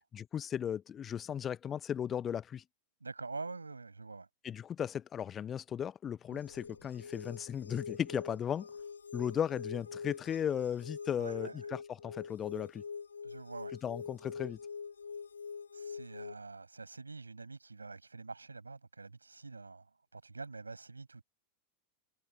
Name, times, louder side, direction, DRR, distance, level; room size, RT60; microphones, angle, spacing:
voice 1, 0.1-2.6 4.4-8.7 9.1-12.8 13.8-14.6, left 9 dB, 25° left, 0.6 m, -36 dB
voice 2, 3.0-4.3 6.3-6.4 11.2-11.6 13.2-13.8 15.7-21.2, right 3 dB, 80° right, 6.0 m, -46 dB
sound 1, 6.3-16.3, left 5 dB, 75° left, 1.9 m, -45 dB
figure-of-eight pair, 90°, 0 cm